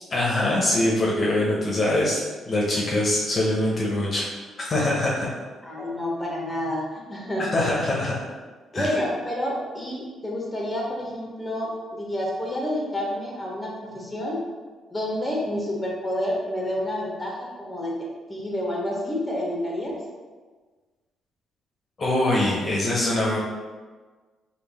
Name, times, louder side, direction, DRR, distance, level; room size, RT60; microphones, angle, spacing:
voice 1, 0.1-4.2 4.7-5.3 7.5-8.1 8.7-8.9 22.0-23.4, left 1 dB, 35° left, -4 dB, 0.8 m, -23 dB
voice 2, 5.6-7.5 8.7-14.4 14.9-17.9 18.3-19.9, left 1 dB, 10° left, -3 dB, 0.9 m, -29 dB
3.3 x 2.3 x 3.5 m, 1.4 s
cardioid pair, 90°, 0 cm